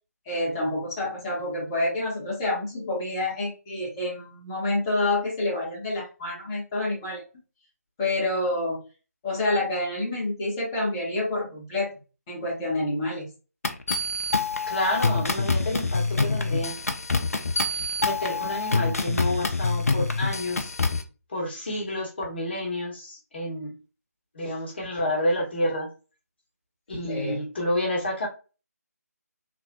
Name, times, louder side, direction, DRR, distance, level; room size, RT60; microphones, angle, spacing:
voice 1, 0.3-7.2 8.0-8.8 9.2-11.9 12.3-13.3 27.1-27.4, left 2 dB, 15° left, -5 dB, 0.7 m, -28 dB
sound 1, 13.6-21.0, left 3 dB, 60° left, 0.5 m, -26 dB
voice 2, 14.7-16.8 17.7-20.7 21.3-23.7 24.3-25.9 26.9-28.3, left 1 dB, 40° left, 0 dB, 1.1 m, -29 dB
3.1 x 2.0 x 2.5 m, 0.33 s
figure-of-eight pair, 155°, 9 cm